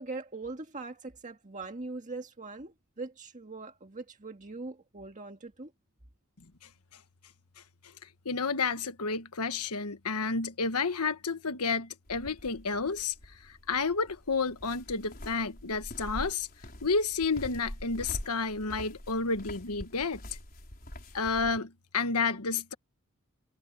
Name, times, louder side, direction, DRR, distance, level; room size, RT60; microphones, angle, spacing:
voice 1, 0.0-5.7, right 3 dB, 35° right, 1.8 m, -41 dB
voice 2, 8.2-13.1 13.4-16.5 16.8-20.2 21.1-22.7, left 4 dB, 85° left, 1.4 m, -31 dB
sound 1, 12.1-21.6, left 1 dB, 40° left, 4.7 m, -45 dB
head